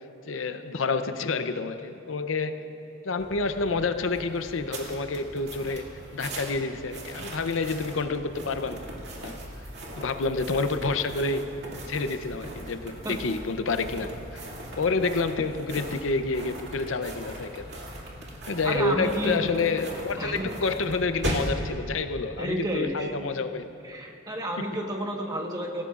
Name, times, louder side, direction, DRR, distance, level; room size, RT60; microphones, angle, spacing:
voice 1, 0.3-2.7 3.0-5.9 6.1-8.8 9.2-9.4 9.9-11.5 11.9-14.1 14.8-17.6 18.5-23.6 24.6-24.7, left 3 dB, 85° left, 9 dB, 0.7 m, -28 dB
sound 1, 3.2-21.6, right 1 dB, 55° right, 2.5 m, -39 dB
voice 2, 18.6-19.4 20.2-20.5 22.4-23.1 23.8-25.8, right 1 dB, 20° right, 1 dB, 1.3 m, -31 dB
26.5 x 16.5 x 2.5 m, 2.8 s
head